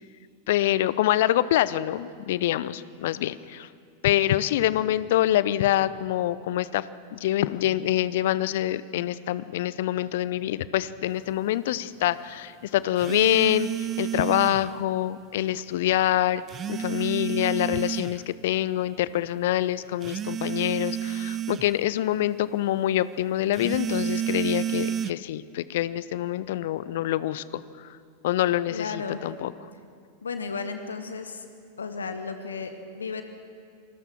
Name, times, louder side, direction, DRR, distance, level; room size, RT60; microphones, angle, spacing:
voice 1, 0.5-3.7 4.0-16.4 16.7-27.9 28.2-29.5, left 13 dB, 55° left, 18 dB, 0.7 m, -25 dB
sound 1, 13.0-14.7 16.5-18.2 20.0-21.7 23.5-25.1, right 10 dB, 25° right, 0.5 m, -30 dB
voice 2, 28.7-29.2 30.2-31.5 31.8-33.2, left 5 dB, 70° left, 9 dB, 1.3 m, -34 dB
28.0 x 20.5 x 6.1 m, 2.3 s
figure-of-eight pair, 90°, 0 cm